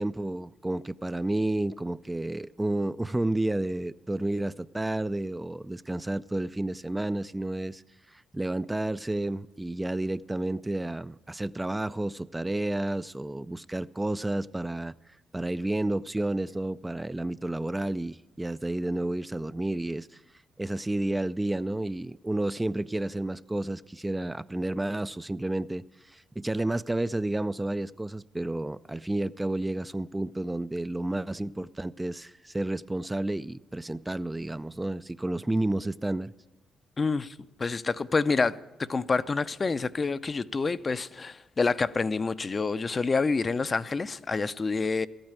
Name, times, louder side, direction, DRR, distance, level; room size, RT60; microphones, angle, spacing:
voice 1, 0.0-7.8 8.1-14.9 15.3-20.2 20.6-36.3, right 1 dB, 15° right, 0.4 m, -31 dB
voice 2, 37.0-38.6 38.9-45.1, left 4 dB, 40° left, 0.5 m, -27 dB
14.0 x 8.9 x 9.1 m
hypercardioid pair, 50°, 0 cm